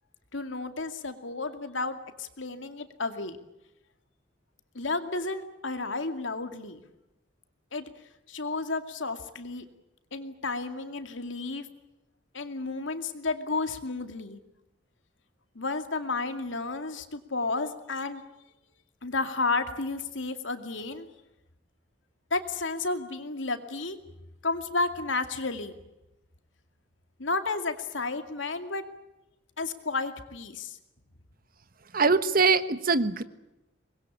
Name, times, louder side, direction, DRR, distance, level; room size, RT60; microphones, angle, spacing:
voice 1, 0.3-3.4 4.7-6.8 7.7-7.9 8.3-9.6 10.1-11.7 12.3-14.4 15.5-18.2 19.0-21.1 22.3-24.0 24.4-25.8 27.2-28.8 29.6-30.8, left 3 dB, 85° left, 8 dB, 2.5 m, -32 dB
voice 2, 31.9-33.2, right 4 dB, 50° right, 13 dB, 1.3 m, -23 dB
24.5 x 21.0 x 8.6 m, 0.95 s
head